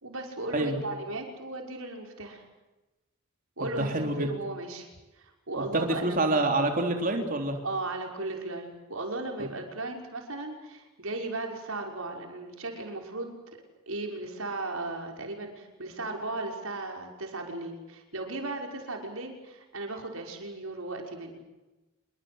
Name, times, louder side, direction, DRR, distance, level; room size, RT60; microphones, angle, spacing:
voice 1, 0.0-2.4 3.6-4.9 5.2-6.4 7.6-13.3 13.9-21.4, right 2 dB, 85° right, 2 dB, 5.9 m, -36 dB
voice 2, 3.8-4.3 5.7-7.6, right 2 dB, 40° right, 3 dB, 3.7 m, -26 dB
27.0 x 23.5 x 8.0 m, 1.1 s
head